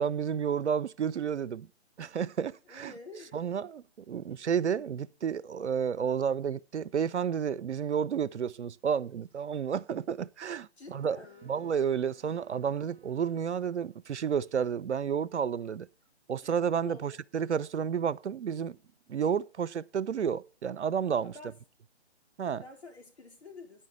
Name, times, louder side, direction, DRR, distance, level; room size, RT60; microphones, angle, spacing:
voice 1, 0.0-1.7 2.0-2.9 3.3-11.2 11.5-15.9 16.3-18.8 19.1-21.3 22.4-22.6, right 7 dB, 85° right, 0.6 m, -31 dB
voice 2, 2.7-3.4 10.8-11.6 16.4-16.5 16.8-17.2 21.2-21.6 22.6-23.9, left 2 dB, 70° left, 4.0 m, -48 dB
Wind instrument woodwind instrument, 10.8-14.4, right 8 dB, 5° right, 1.9 m, -64 dB
10.0 x 5.5 x 7.4 m
figure-of-eight pair, 145°, 33 cm